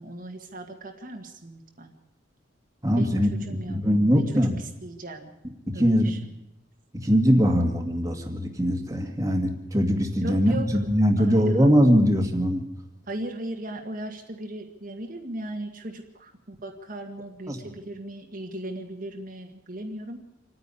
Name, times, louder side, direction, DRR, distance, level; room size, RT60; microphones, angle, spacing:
voice 1, 0.0-1.9 3.0-3.8 4.1-5.3 5.7-6.3 10.2-10.7 11.2-11.7 13.1-20.2, right 1 dB, 45° right, 3 dB, 1.7 m, -37 dB
voice 2, 2.8-4.6 5.7-6.1 7.0-12.6 17.5-17.6, equal, 15° right, 2 dB, 2.0 m, -22 dB
27.0 x 9.8 x 9.8 m, 0.90 s
head